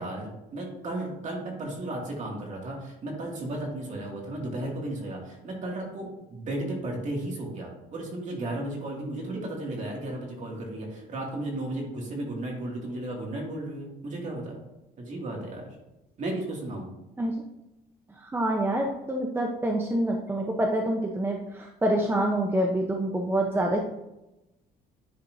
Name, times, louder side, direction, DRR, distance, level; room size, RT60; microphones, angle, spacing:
voice 1, 0.0-14.6 15.0-15.8 16.2-16.9, right 1 dB, 45° right, -1 dB, 2.2 m, -34 dB
voice 2, 18.2-23.8, right 1 dB, 15° right, 1 dB, 0.7 m, -26 dB
10.0 x 4.3 x 2.7 m, 0.95 s
cardioid pair, 110°, 17 cm